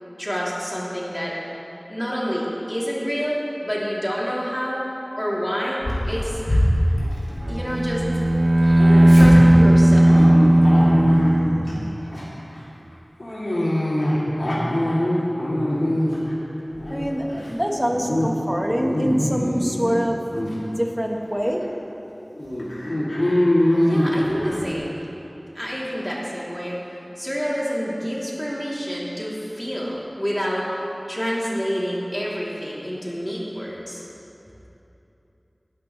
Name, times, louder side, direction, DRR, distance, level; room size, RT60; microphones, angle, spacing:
voice 1, 0.2-1.4 1.9-4.8 5.1-5.8 6.0-6.4 7.5-8.0 9.1-10.3 23.8-24.9 25.5-30.7 31.1-34.0, equal, 10° left, -6 dB, 3.3 m, -28 dB
Dog, 5.8-8.1 8.4-11.7 12.1-12.4 13.2-16.3 16.7-17.5 17.8-18.3 18.6-19.9 20.3-20.5 21.2-21.3 21.6-21.7 22.4-24.6, left 1 dB, 85° left, 2.9 m, -23 dB
Bowed string instrument, 7.4-12.2, right 1 dB, 75° right, 0.5 m, -15 dB
voice 2, 16.9-20.2 20.5-21.6, equal, 10° right, 1 dB, 1.5 m, -24 dB
19.0 x 11.5 x 3.3 m, 3.0 s
wide cardioid pair, 40°, 0 cm